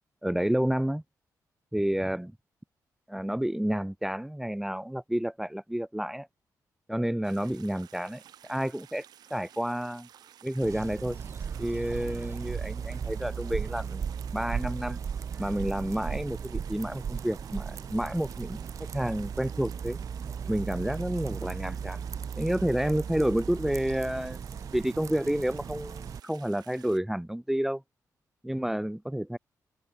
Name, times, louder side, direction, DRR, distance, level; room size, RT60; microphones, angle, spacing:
voice 1, 0.2-1.0 1.7-2.3 3.1-6.3 6.9-9.0 9.3-10.1 10.4-11.2 11.6-14.0 14.3-15.0 15.4-18.6 18.9-20.0 20.5-22.0 22.4-24.4 24.7-27.8 28.4-29.4, equal, 5° right, 0.8 m, -30 dB
sound 1, 7.2-27.0, right 10 dB, 90° right, 5.5 m, -55 dB
sound 2, 10.6-26.2, right 7 dB, 50° right, 0.6 m, -36 dB
sound 3, 11.1-14.0 15.3-16.5, right 4 dB, 30° right, 7.3 m, -57 dB
cardioid pair, 100°, 7 cm